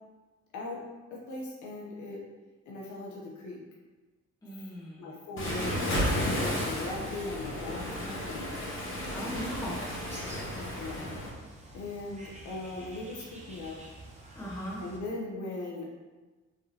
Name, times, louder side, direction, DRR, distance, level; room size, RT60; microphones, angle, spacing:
voice 1, 1.1-2.2 2.7-3.6 5.0-5.8 6.3-8.5 9.2-9.5 10.7-11.1 11.7-13.8 14.8-15.9, left 2 dB, 75° left, -4 dB, 0.8 m, -39 dB
voice 2, 4.4-5.1 9.1-10.0 14.3-14.8, equal, 10° left, -7 dB, 1.5 m, -39 dB
Waves surf, 5.4-11.3, left 1 dB, 45° left, 1.1 m, -33 dB
Bird, 9.3-15.0, right 1 dB, 25° right, 0.8 m, -49 dB
3.5 x 3.5 x 2.8 m, 1.3 s
cardioid pair, 90°, 30 cm